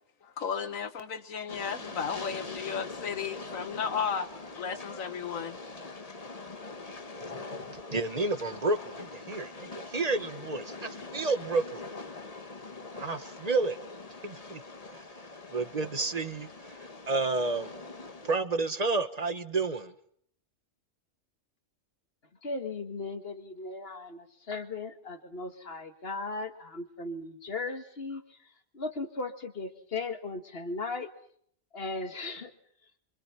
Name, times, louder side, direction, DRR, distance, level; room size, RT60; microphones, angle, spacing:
voice 1, 0.2-4.3 4.5-5.6, left 6 dB, 85° left, 10 dB, 1.7 m, -34 dB
Train, 1.5-18.4, left 3 dB, 30° left, 1.3 m, -43 dB
voice 2, 7.2-11.8 12.9-13.8 14.2-14.6 14.9-15.0 15.5-17.7 18.2-19.9, right 3 dB, 30° right, 10 dB, 1.5 m, -31 dB
voice 3, 22.4-31.1 31.7-32.5, left 3 dB, 50° left, 7 dB, 2.1 m, -37 dB
27.5 x 25.0 x 5.8 m, 0.64 s
omnidirectional pair, 1.3 m